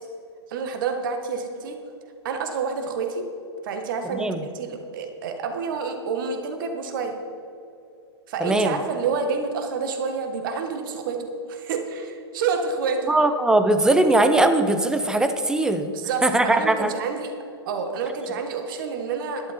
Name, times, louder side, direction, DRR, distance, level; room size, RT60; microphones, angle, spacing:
voice 1, 0.5-1.8 2.2-3.3 3.6-7.2 8.3-13.2 15.9-17.3 17.6-19.5, right 5 dB, 50° right, 5 dB, 1.7 m, -28 dB
voice 2, 4.1-4.4 8.4-8.8 13.1-15.9 16.2-16.9, right 2 dB, 5° right, 8 dB, 0.7 m, -20 dB
12.0 x 11.5 x 4.5 m, 2.7 s
figure-of-eight pair, 110°, 14 cm